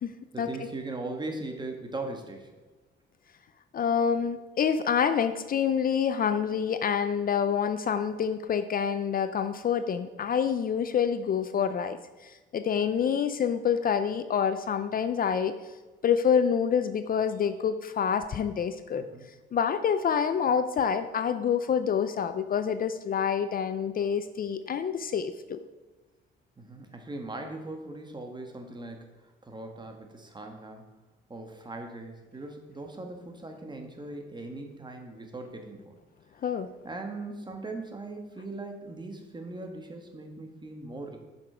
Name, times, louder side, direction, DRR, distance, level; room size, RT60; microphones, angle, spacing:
voice 1, 0.3-2.5 18.9-19.3 26.6-30.8 31.3-35.9 36.8-41.2, right 2 dB, 20° right, 4 dB, 1.4 m, -39 dB
voice 2, 3.7-15.5 16.0-19.0 19.5-25.6 36.4-36.7, left 7 dB, 45° left, 10 dB, 0.5 m, -27 dB
7.4 x 6.0 x 5.0 m, 1.2 s
cardioid pair, 90°, 20 cm